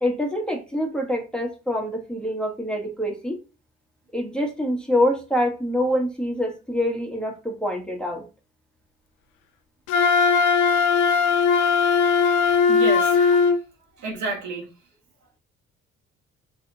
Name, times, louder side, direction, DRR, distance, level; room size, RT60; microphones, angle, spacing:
voice 1, 0.0-3.4 4.1-8.2, equal, 5° left, 1.3 m, -25 dB
Wind instrument woodwind instrument, 9.9-13.6, left 5 dB, 90° left, 0.6 m, -19 dB
voice 2, 12.7-13.4 14.0-14.6, right 3 dB, 70° right, 1.5 m, -30 dB
4.1 x 3.3 x 2.8 m
cardioid pair, 90°, 30 cm